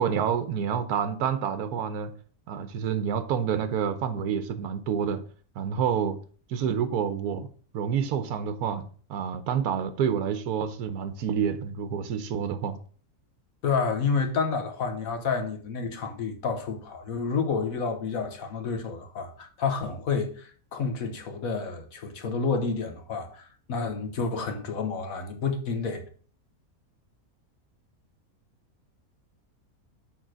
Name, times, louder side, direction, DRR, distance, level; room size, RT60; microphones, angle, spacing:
voice 1, 0.0-2.1 2.5-5.2 5.6-6.2 6.5-7.5 7.7-8.8 9.1-12.8, right 7 dB, 85° right, 1.2 m, -28 dB
voice 2, 13.6-26.0, left 5 dB, 65° left, 1.5 m, -29 dB
6.5 x 4.1 x 6.1 m
omnidirectional pair, 1.6 m